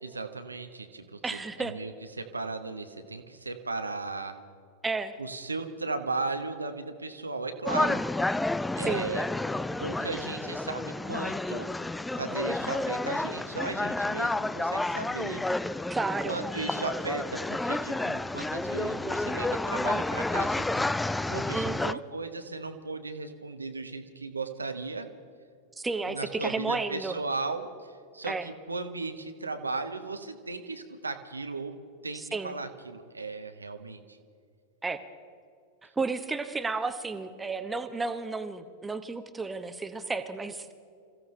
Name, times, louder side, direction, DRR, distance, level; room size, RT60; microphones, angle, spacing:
voice 1, 0.0-4.4 5.2-8.0 8.7-9.3 9.8-11.8 12.2-15.4 16.2-20.9 21.3-25.1 26.1-31.7 32.0-34.2, right 3 dB, 80° right, 8 dB, 1.2 m, -36 dB
voice 2, 1.2-1.8 4.8-5.2 8.9-9.1 15.9-16.4 21.5-22.0 25.8-27.2 28.3-28.5 32.1-32.6 34.8-35.0 35.8-40.7, right 3 dB, 10° right, 9 dB, 1.0 m, -32 dB
sound 1, 7.6-21.9, left 2 dB, 5° left, 0.3 m, -30 dB
27.5 x 15.5 x 3.3 m, 2.4 s
figure-of-eight pair, 90°, 0 cm